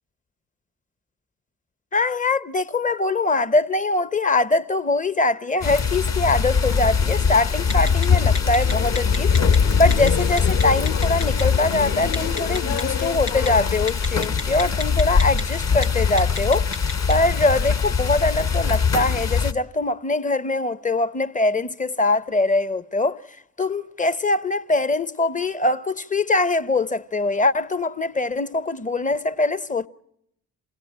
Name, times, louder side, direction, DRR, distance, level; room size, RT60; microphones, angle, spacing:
voice 1, 1.9-9.3 9.7-16.7 17.1-23.2 23.6-29.9, left 2 dB, 20° left, 0.9 m, -22 dB
sound 1, 5.6-19.5, left 6 dB, 40° left, 1.3 m, -22 dB
Telephone, 7.7-8.1 8.3-9.6 9.9-10.1 10.4-11.4 12.1-12.8 13.3-13.5 13.9-15.4 15.7-15.9 16.2-17.1, left 3 dB, 90° left, 1.2 m, -29 dB
sound 2, 8.6-13.9, left 7 dB, 60° left, 3.3 m, -31 dB
28.0 x 17.5 x 8.8 m
hypercardioid pair, 40°, 43 cm